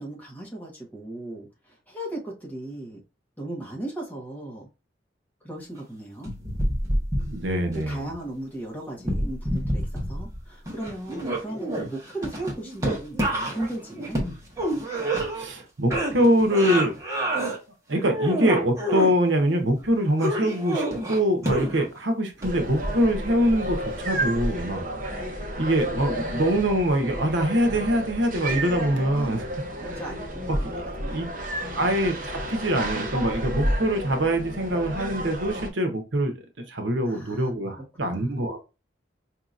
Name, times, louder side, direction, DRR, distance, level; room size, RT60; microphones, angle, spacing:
voice 1, 0.0-3.0 3.4-4.7 5.4-6.3 7.7-14.2 25.1-25.5 29.1-29.4 29.8-31.3 31.6-31.8 37.1-37.5 37.8-38.3, right 1 dB, 10° left, 1.2 m, -37 dB
sound 1, 6.3-7.8 9.0-10.4 10.7-15.6 15.9-17.6 18.0-19.1 20.2-22.0 22.4-22.5, right 1 dB, 15° right, 1.1 m, -28 dB
voice 2, 7.1-8.1 15.3-16.9 17.9-24.8 25.6-29.5 29.9-30.0 30.5-30.6 31.1-31.2 31.8-36.3 36.7-38.6, equal, 80° right, 0.9 m, -24 dB
sound 2, 22.4-35.7, right 1 dB, 45° right, 0.8 m, -31 dB
4.7 x 2.8 x 2.5 m
head